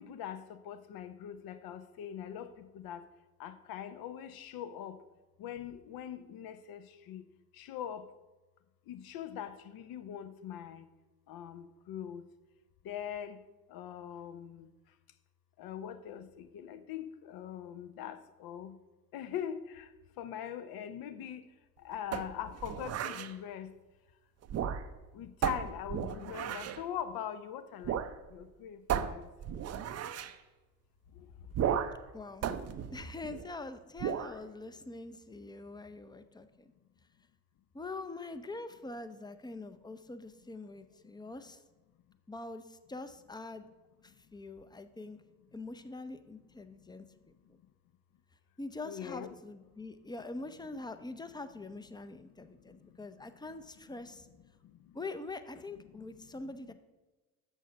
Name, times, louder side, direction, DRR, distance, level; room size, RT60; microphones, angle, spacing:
voice 1, 0.0-3.0 3.4-5.0 5.4-7.2 7.6-8.1 8.9-10.9 11.3-12.2 12.8-13.4 13.7-14.7 15.6-18.7 19.1-19.9 20.2-21.4 21.8-23.7 25.1-28.0 28.3-29.2 48.8-49.4 56.0-56.1 56.6-56.7, left 9 dB, 55° left, 0.8 m, -42 dB
sound 1, 22.1-23.3 24.4-25.1 25.4-26.8 27.8-28.2 28.4-28.5 28.9-30.4 31.5-32.1 32.4-33.5 34.0-34.4, right 9 dB, 40° right, 0.6 m, -34 dB
voice 2, 32.1-32.5 32.9-36.7 37.7-41.6 42.3-43.7 44.0-45.2 45.5-47.6 48.6-54.3 54.9-56.7, left 2 dB, 10° left, 0.6 m, -44 dB
6.7 x 6.3 x 5.2 m
hypercardioid pair, 60°, 42 cm